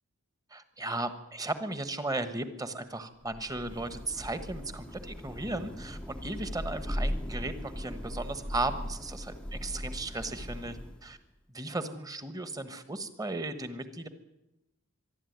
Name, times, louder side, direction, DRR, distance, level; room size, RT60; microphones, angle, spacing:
voice 1, 0.5-11.2 11.5-14.1, right 2 dB, 15° right, 11 dB, 1.4 m, -36 dB
Thunder / Rain, 3.2-11.3, equal, 5° left, 0.8 m, -38 dB
24.0 x 12.0 x 9.5 m, 0.91 s
head